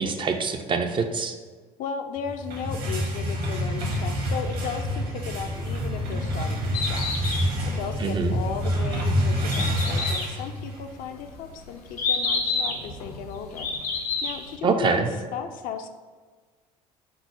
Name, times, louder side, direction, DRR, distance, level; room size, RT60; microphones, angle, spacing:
voice 1, 0.0-1.3 8.0-8.4 14.6-15.1, right 5 dB, 25° right, 5 dB, 0.4 m, -25 dB
voice 2, 1.8-7.3 7.7-13.7 14.2-15.1 15.3-15.9, left 7 dB, 45° left, 6 dB, 0.4 m, -35 dB
sound 1, 2.3-10.9, equal, 50° right, 1.0 m, -28 dB
sound 2, 3.8-9.0, equal, 75° right, 1.0 m, -38 dB
Bird, 6.6-14.6, left 4 dB, 80° left, 0.7 m, -30 dB
5.2 x 2.0 x 4.5 m, 1.4 s
figure-of-eight pair, 60°, 20 cm